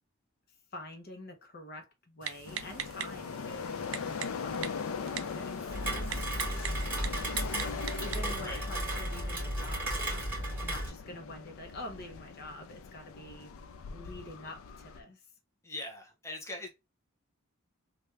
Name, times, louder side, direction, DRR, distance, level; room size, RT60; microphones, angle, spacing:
voice 1, 0.7-4.9 5.3-6.2 7.1-13.5 13.9-15.3, left 1 dB, 50° left, 0.7 m, -47 dB
Typing, 2.2-8.4, right 9 dB, 70° right, 0.4 m, -43 dB
sound 1, 2.4-15.0, left 5 dB, 80° left, 0.4 m, -41 dB
Rain, 5.7-10.9, right 1 dB, 10° right, 1.8 m, -34 dB
voice 2, 15.6-16.7, left 2 dB, 15° left, 0.7 m, -41 dB
3.2 x 2.3 x 3.1 m
head